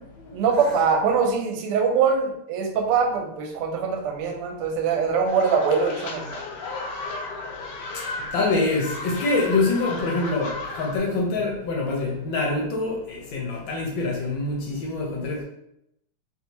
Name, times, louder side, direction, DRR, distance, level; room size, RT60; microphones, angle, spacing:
voice 1, 0.3-6.4, right 5 dB, 85° right, 3 dB, 1.5 m, -23 dB
sound 1, 5.3-11.0, left 3 dB, 90° left, 0.9 m, -34 dB
voice 2, 8.3-10.5 10.8-15.4, left 3 dB, 70° left, -2 dB, 1.3 m, -25 dB
3.3 x 2.6 x 2.9 m, 0.79 s
omnidirectional pair, 2.4 m